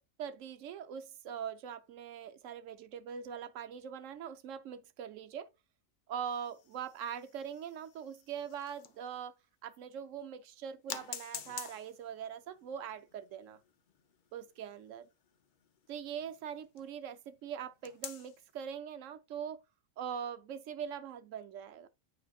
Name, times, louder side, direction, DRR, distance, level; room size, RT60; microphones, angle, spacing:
voice 1, 0.2-5.5 6.1-9.3 9.6-13.6 14.3-15.1 15.9-19.6 20.0-21.9, right 8 dB, 70° right, 1.0 m, -42 dB
sound 1, 6.3-9.2 9.7-9.8 10.9-16.9 17.8-18.5, left 7 dB, 50° left, 0.6 m, -49 dB
8.6 x 5.0 x 2.3 m
omnidirectional pair, 1.4 m